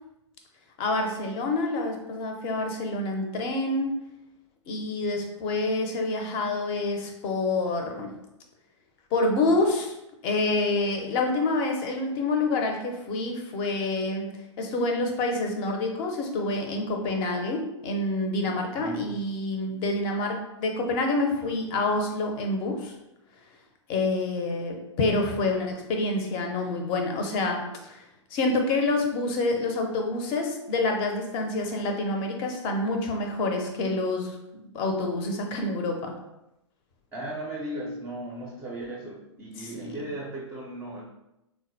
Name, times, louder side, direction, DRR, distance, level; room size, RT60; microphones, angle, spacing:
voice 1, 0.8-3.9 4.7-8.1 9.1-9.9 10.2-14.3 14.6-22.9 23.9-28.0 28.3-34.4 34.7-36.1 39.9-40.0, left 2 dB, 30° left, 3 dB, 0.6 m, -27 dB
voice 2, 18.8-19.2 37.1-41.0, right 1 dB, 15° right, -3 dB, 0.5 m, -36 dB
3.8 x 2.1 x 2.6 m, 0.89 s
figure-of-eight pair, 110°, 16 cm